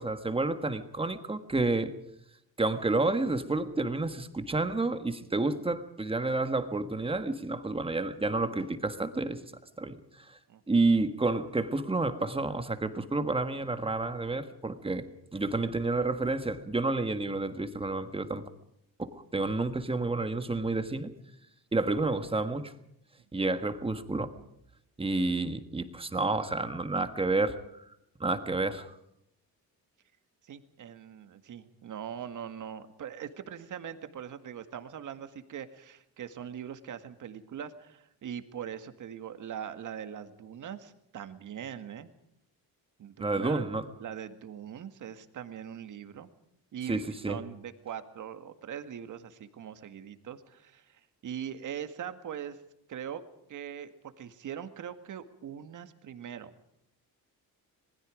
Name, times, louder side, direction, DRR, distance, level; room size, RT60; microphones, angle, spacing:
voice 1, 0.0-1.9 2.6-9.4 9.8-10.0 10.3-10.4 10.7-15.1 15.3-18.4 19.0-21.1 21.7-22.7 23.3-24.3 25.0-27.6 28.2-29.0 43.2-43.8 46.9-47.4, right 3 dB, 15° right, 9 dB, 1.5 m, -30 dB
voice 2, 30.4-42.1 43.0-43.7 44.0-46.3 46.7-52.6 52.9-53.2 53.5-56.5, right 9 dB, 55° right, 9 dB, 1.9 m, -41 dB
27.0 x 20.5 x 5.1 m, 0.78 s
cardioid pair, 140°, 36 cm